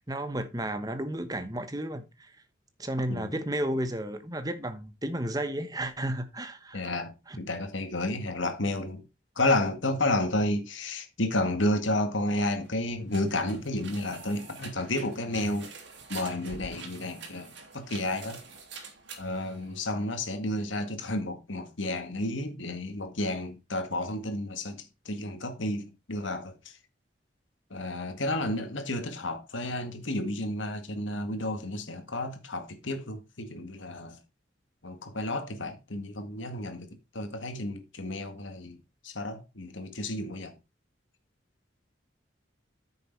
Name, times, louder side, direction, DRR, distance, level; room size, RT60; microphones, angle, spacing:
voice 1, 0.1-2.3 2.8-6.8 7.3-7.4, right 1 dB, 20° right, 1.1 m, -32 dB
voice 2, 6.7-9.0 9.4-15.7 16.1-18.4 19.2-26.7 27.7-34.2 34.8-36.9 37.1-38.8 39.0-40.5, left 1 dB, 85° left, 1.9 m, -31 dB
sound 1, 12.3-20.2, right 4 dB, 70° right, 2.8 m, -47 dB
9.4 x 6.8 x 4.6 m
head